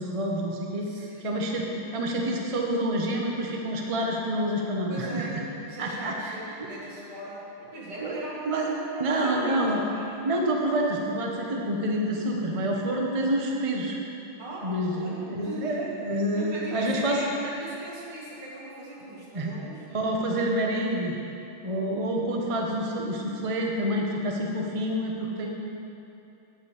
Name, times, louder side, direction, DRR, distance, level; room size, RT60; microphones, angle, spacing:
voice 1, 0.0-1.7 1.9-5.4 5.8-6.7 8.0-8.1 8.5-8.7 9.0-9.8 10.2-14.0 14.6-17.2 19.3-19.5 19.9-21.2 21.6-25.5, right 1 dB, 45° right, -1 dB, 0.4 m, -28 dB
voice 2, 0.8-1.3 4.9-5.4 5.7-10.3 14.4-15.9 16.3-19.8 21.6-22.0, right 1 dB, 90° right, -6 dB, 3.0 m, -39 dB
10.0 x 5.1 x 8.1 m, 2.8 s
omnidirectional pair, 2.3 m